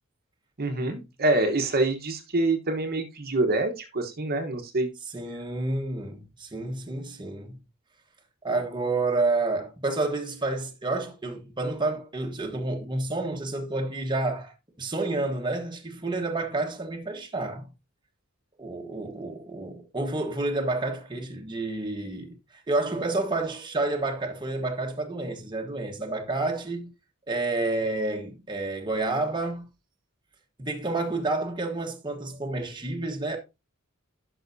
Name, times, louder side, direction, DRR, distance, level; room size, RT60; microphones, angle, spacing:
voice 1, 0.6-4.9, right 2 dB, 45° right, 1.2 m, -26 dB
voice 2, 5.1-7.6 8.4-17.7 18.6-22.4 22.7-26.9 27.3-29.6 30.6-33.4, right 2 dB, 20° right, 1.2 m, -29 dB
11.0 x 6.1 x 2.7 m
head